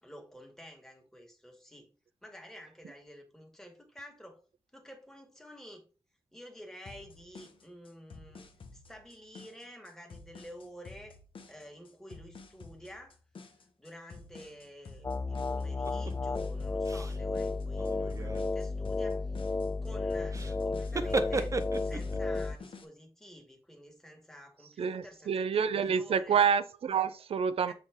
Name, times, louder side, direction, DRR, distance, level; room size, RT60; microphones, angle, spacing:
voice 1, 0.0-1.9 2.2-4.4 4.7-5.9 6.3-8.5 8.7-11.2 11.5-13.2 13.8-19.4 19.8-26.4 27.7-27.8, equal, 5° left, 1.8 m, -50 dB
sound 1, 6.9-22.9, left 4 dB, 65° left, 1.1 m, -51 dB
sound 2, 15.0-22.6, left 3 dB, 25° left, 0.4 m, -33 dB
sound 3, 15.9-16.1 16.8-17.2 17.7-18.5 20.3-20.6 20.8-22.2, right 3 dB, 35° right, 0.6 m, -34 dB
voice 2, 24.8-27.7, right 7 dB, 85° right, 0.5 m, -28 dB
6.9 x 4.1 x 3.7 m
wide cardioid pair, 85°, 10 cm